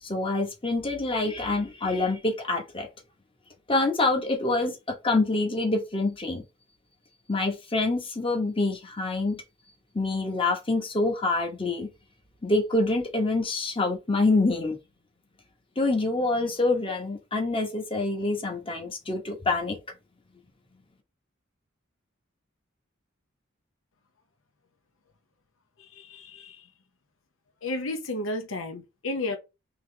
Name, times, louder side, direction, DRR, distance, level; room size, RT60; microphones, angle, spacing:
voice 1, 0.0-2.9 3.7-6.4 7.3-9.4 9.9-11.9 12.4-14.8 15.8-19.8, left 2 dB, 25° left, 1.1 m, -26 dB
voice 2, 25.8-26.7 27.6-29.4, left 2 dB, 80° left, 0.8 m, -33 dB
4.0 x 3.1 x 3.3 m
head